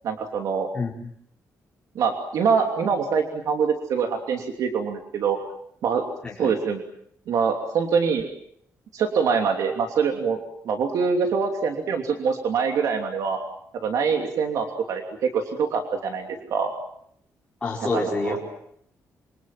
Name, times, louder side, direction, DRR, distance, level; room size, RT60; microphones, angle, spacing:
voice 1, 0.0-0.7 1.9-5.4 5.8-6.0 6.4-6.8 7.3-8.3 8.9-13.4 13.8-16.7 17.9-18.4, right 6 dB, 70° right, 4 dB, 3.0 m, -24 dB
voice 2, 0.7-1.1 6.2-6.5 17.6-18.4, left 2 dB, 15° left, -4 dB, 4.8 m, -27 dB
27.0 x 25.0 x 7.6 m, 0.72 s
wide cardioid pair, 175°, 6 cm